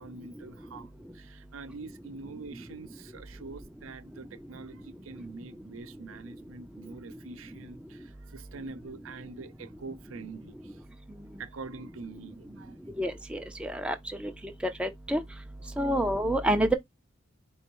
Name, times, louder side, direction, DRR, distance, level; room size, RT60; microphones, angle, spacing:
voice 1, 0.0-10.8 11.4-12.8 15.6-15.7, right 4 dB, 85° right, 0.6 m, -45 dB
voice 2, 13.0-14.3 14.8-15.2 15.8-16.7, right 1 dB, 5° right, 0.4 m, -28 dB
4.4 x 3.1 x 3.0 m
head